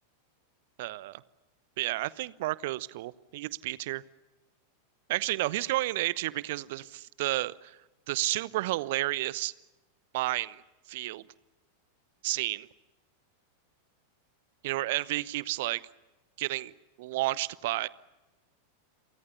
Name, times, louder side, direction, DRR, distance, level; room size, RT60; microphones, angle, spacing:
voice 1, 0.8-1.2 1.8-4.0 5.1-7.8 8.1-9.5 10.1-10.6 10.9-11.2 12.2-12.7 14.6-15.8 16.4-16.7 17.0-17.9, right 18 dB, 50° right, 21 dB, 0.9 m, -31 dB
29.5 x 24.0 x 6.9 m, 1.1 s
figure-of-eight pair, 90°, 0 cm